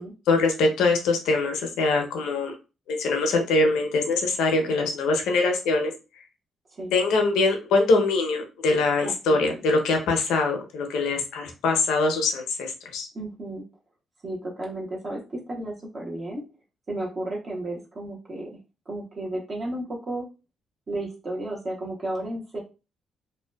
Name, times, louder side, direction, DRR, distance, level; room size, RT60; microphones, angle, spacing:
voice 1, 0.3-2.5 2.9-5.9 6.9-13.1, left 3 dB, 90° left, 3 dB, 0.6 m, -23 dB
voice 2, 9.0-9.6 13.1-13.6 14.2-16.4 16.9-18.6 18.9-20.3 20.9-22.6, right 1 dB, 40° right, -2 dB, 0.8 m, -33 dB
2.6 x 2.1 x 2.2 m, 0.30 s
cardioid pair, 90°, 0 cm